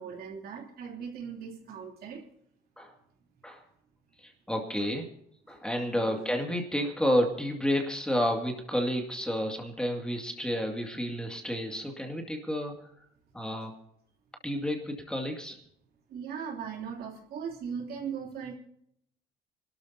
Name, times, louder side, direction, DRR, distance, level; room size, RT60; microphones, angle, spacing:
voice 1, 0.0-2.2 5.9-6.2 16.1-18.5, right 7 dB, 65° right, 1 dB, 3.1 m, -39 dB
voice 2, 4.2-5.1 5.5-12.8 13.3-13.7 14.4-15.6, equal, 5° left, 2 dB, 2.2 m, -30 dB
26.0 x 12.5 x 2.8 m, 0.71 s
cardioid pair, 110°, 17 cm